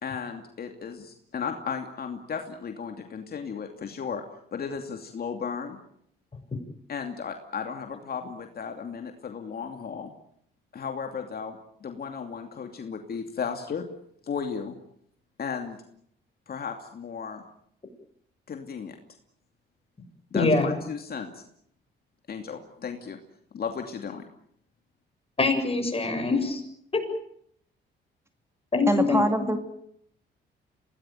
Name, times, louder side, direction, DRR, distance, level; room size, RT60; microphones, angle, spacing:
voice 1, 0.0-4.2 4.5-5.8 6.9-10.1 10.7-13.8 14.2-14.7 15.4-15.8 16.5-17.4 18.5-19.0 20.3-21.4 22.3-23.2 23.5-24.2, left 6 dB, 50° left, 5 dB, 2.7 m, -35 dB
voice 2, 20.3-20.7 25.4-26.6 26.9-27.0 28.7-29.5, left 3 dB, 30° left, 5 dB, 7.5 m, -24 dB
voice 3, 28.9-29.6, right 1 dB, 15° right, 7 dB, 2.3 m, -23 dB
26.5 x 18.5 x 9.3 m, 0.71 s
cardioid pair, 90°, 20 cm